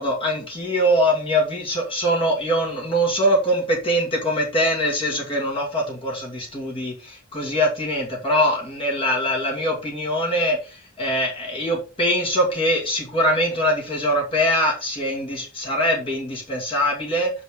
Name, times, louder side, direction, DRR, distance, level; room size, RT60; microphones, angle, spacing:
voice 1, 0.0-17.3, equal, 25° left, -2 dB, 2.4 m, -23 dB
6.7 x 5.0 x 4.9 m, 0.32 s
head